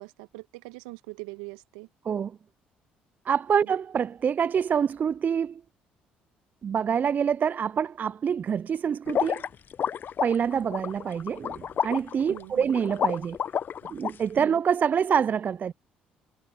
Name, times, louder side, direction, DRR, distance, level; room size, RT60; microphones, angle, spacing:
voice 1, 0.0-1.9 3.6-3.7 12.3-12.8 14.4-14.6, right 26 dB, 80° right, 1.3 m, -42 dB
voice 2, 3.3-5.6 6.6-9.4 10.2-13.4 13.9-15.7, right 7 dB, 40° right, 0.4 m, -26 dB
sound 1, 9.1-14.1, left 8 dB, 50° left, 0.7 m, -30 dB
hypercardioid pair, 55°, 4 cm